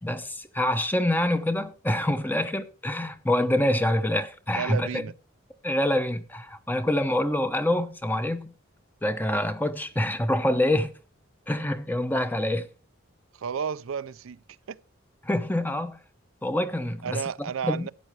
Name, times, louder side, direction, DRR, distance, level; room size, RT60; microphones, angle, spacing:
voice 1, 0.0-4.9 5.6-8.5 9.0-10.9 11.5-12.7 15.2-16.0 16.4-17.2 17.6-17.9, left 1 dB, 10° left, 0.8 m, -26 dB
voice 2, 4.5-5.1 13.3-14.4 14.7-14.8 17.0-17.9, right 7 dB, 75° right, 0.4 m, -32 dB
13.5 x 9.1 x 3.2 m
head